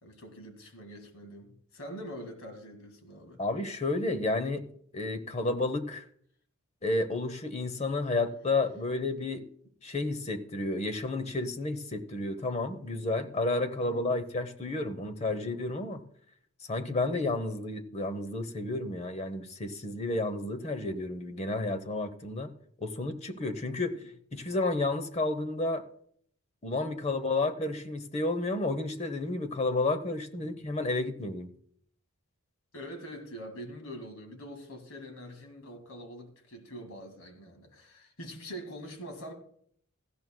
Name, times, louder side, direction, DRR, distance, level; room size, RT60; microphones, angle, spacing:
voice 1, 0.0-3.4 13.8-14.1 17.0-17.3 27.1-27.5 30.4-30.6 32.7-39.3, equal, 75° left, 2.0 m, -44 dB
voice 2, 3.4-4.6 4.9-6.0 6.8-9.5 9.8-16.0 16.7-22.5 22.8-24.0 24.3-25.8 26.6-31.5, left 2 dB, 30° left, 0.8 m, -31 dB
17.0 x 14.0 x 2.2 m
head